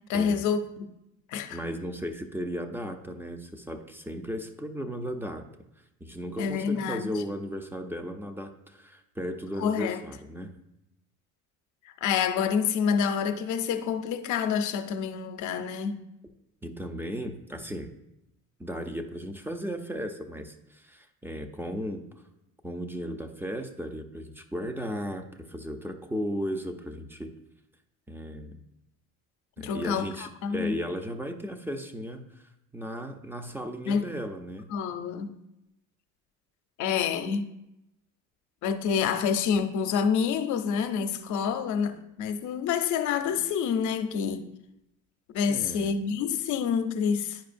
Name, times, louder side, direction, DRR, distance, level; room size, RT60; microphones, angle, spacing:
voice 1, 0.1-0.9 1.3-1.6 6.4-7.1 9.6-10.0 12.0-16.0 29.6-30.8 33.9-34.0 34.7-35.4 36.8-37.5 38.6-44.4 45.3-47.4, left 6 dB, 70° left, 0.6 m, -27 dB
voice 2, 1.5-5.5 6.0-10.5 16.6-17.9 18.6-22.1 22.6-27.3 28.1-28.6 29.6-32.5 32.7-34.7 45.5-45.9, equal, 5° right, 0.5 m, -35 dB
10.5 x 4.8 x 2.6 m
cardioid pair, 110°, 31 cm